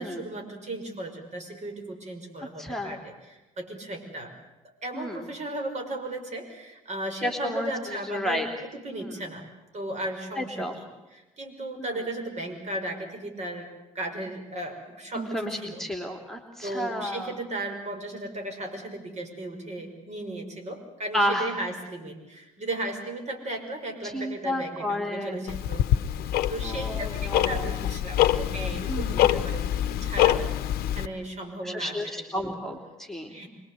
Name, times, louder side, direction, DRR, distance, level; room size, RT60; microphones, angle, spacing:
voice 1, 0.0-4.3 4.6-9.5 9.7-13.7 13.9-15.8 16.6-25.9 26.5-30.5 30.9-32.0 32.3-32.6 33.3-33.5, right 1 dB, 40° right, 5 dB, 5.9 m, -36 dB
voice 2, 2.6-3.0 4.9-5.3 7.2-8.5 8.9-9.1 10.4-10.7 11.8-11.9 15.1-17.3 21.1-21.5 24.0-25.5 26.6-27.7 28.9-29.3 31.6-33.4, equal, ahead, 3 dB, 3.1 m, -31 dB
Tick-tock, 25.5-31.1, left 12 dB, 55° left, 1.0 m, -25 dB
25.5 x 21.5 x 8.2 m, 1.0 s
hypercardioid pair, 60°, 18 cm